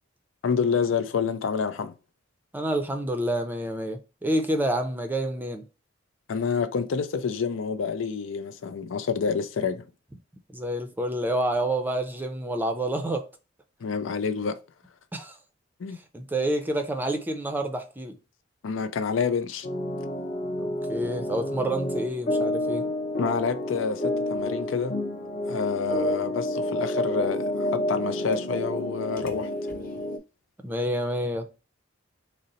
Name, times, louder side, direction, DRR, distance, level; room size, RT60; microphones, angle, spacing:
voice 1, 0.4-1.9 6.3-9.8 13.8-14.6 15.8-16.0 18.6-19.7 23.2-25.0 25.5-29.5, left 5 dB, 85° left, 0.4 m, -28 dB
voice 2, 2.5-5.6 10.5-13.3 15.1-15.4 15.9-18.2 20.6-22.9 30.6-31.5, right 1 dB, 10° right, 0.5 m, -28 dB
sound 1, 19.6-30.2, left 1 dB, 50° left, 0.7 m, -29 dB
3.8 x 2.0 x 4.0 m
head